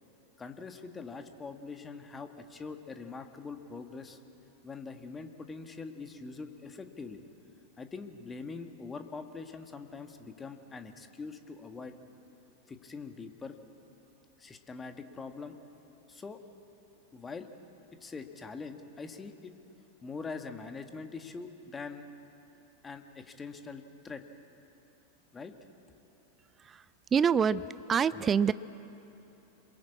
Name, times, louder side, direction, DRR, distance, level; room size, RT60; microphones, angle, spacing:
voice 1, 0.4-4.2 4.6-7.2 7.8-11.9 12.7-13.6 14.4-15.6 16.1-16.4 17.1-17.5 18.0-19.5 20.0-22.1 22.8-24.2 25.3-25.5, left 4 dB, 15° left, 7 dB, 1.7 m, -43 dB
voice 2, 27.1-27.6 27.9-28.5, right 7 dB, 20° right, 18 dB, 0.5 m, -25 dB
27.5 x 22.0 x 8.6 m, 2.9 s
figure-of-eight pair, 90°, 0 cm